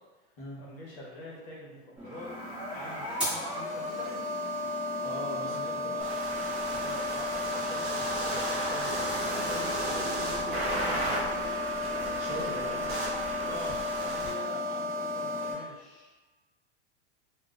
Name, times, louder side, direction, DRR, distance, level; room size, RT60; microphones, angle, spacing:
voice 1, 0.6-2.3 2.7-4.2 5.4-6.1 6.8-9.0 9.3-11.2 12.4-12.9 13.5-16.1, left 2 dB, 55° left, -4 dB, 1.0 m, -44 dB
sound 1, 2.0-15.5, left 1 dB, 5° right, 0.9 m, -34 dB
voice 2, 5.0-5.9 11.9-12.7, right 1 dB, 25° left, -8 dB, 0.8 m, -40 dB
sound 2, 6.0-14.3, right 1 dB, 25° right, 0.4 m, -34 dB
3.9 x 2.3 x 2.3 m, 1.2 s
supercardioid pair, 175°, 36 cm